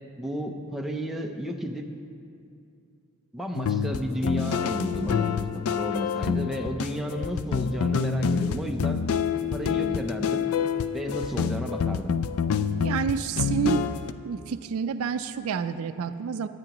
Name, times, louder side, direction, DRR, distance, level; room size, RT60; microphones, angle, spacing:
voice 1, 0.2-1.8 3.3-9.0 9.5-10.5 10.9-12.1, equal, ahead, 2 dB, 0.6 m, -32 dB
sound 1, 3.5-14.1, left 6 dB, 70° left, 0.4 m, -27 dB
voice 2, 12.8-13.9 14.2-16.5, right 6 dB, 65° right, 11 dB, 0.4 m, -28 dB
18.0 x 9.6 x 3.0 m, 2.5 s
head